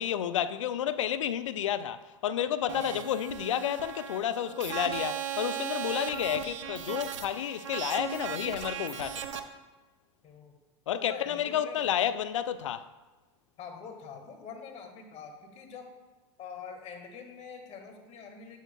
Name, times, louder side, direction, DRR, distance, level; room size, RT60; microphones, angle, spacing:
voice 1, 0.0-9.5 10.9-12.9, left 10 dB, 85° left, 0.4 m, -31 dB
voice 2, 2.7-3.0 10.2-10.6 10.9-11.9 13.6-15.9 16.4-18.6, left 6 dB, 45° left, 1.6 m, -44 dB
sound 1, 2.7-9.4, right 9 dB, 85° right, 0.7 m, -37 dB
8.9 x 8.2 x 2.2 m
hypercardioid pair, 85°, 16 cm